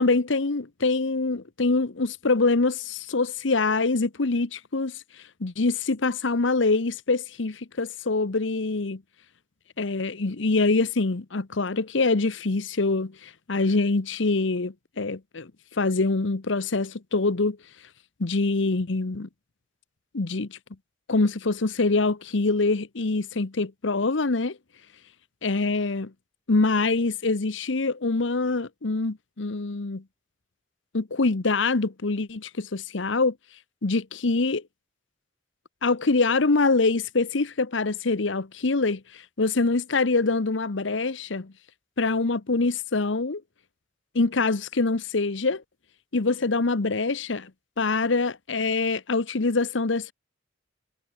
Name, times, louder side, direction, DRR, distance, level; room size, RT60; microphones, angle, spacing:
voice 1, 0.0-5.0 5.4-9.0 9.8-15.5 15.8-17.6 18.2-19.3 20.1-20.6 21.1-24.6 25.4-26.1 26.5-30.0 30.9-33.3 33.8-34.6 35.8-41.5 42.0-43.4 44.1-45.6 46.1-47.5 47.8-50.1, left 3 dB, 70° left, 1.0 m, -24 dB
head